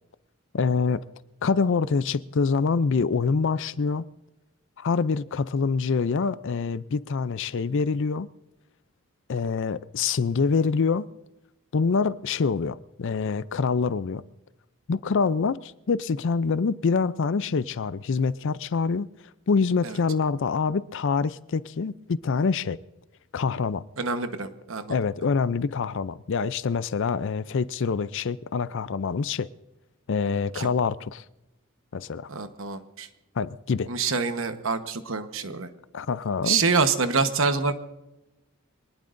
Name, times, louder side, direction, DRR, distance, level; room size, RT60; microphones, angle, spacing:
voice 1, 0.5-1.0 1.4-4.0 4.8-8.3 9.3-11.1 11.7-14.2 14.9-19.1 19.5-22.8 23.3-23.8 24.9-29.5 30.1-31.2 31.9-32.3 33.4-33.9 35.9-36.6, left 5 dB, 60° left, 0.5 m, -25 dB
voice 2, 24.0-25.0 30.5-30.7 32.3-33.1 33.9-35.7 36.4-37.7, right 4 dB, 65° right, 1.2 m, -26 dB
24.5 x 19.5 x 2.6 m
head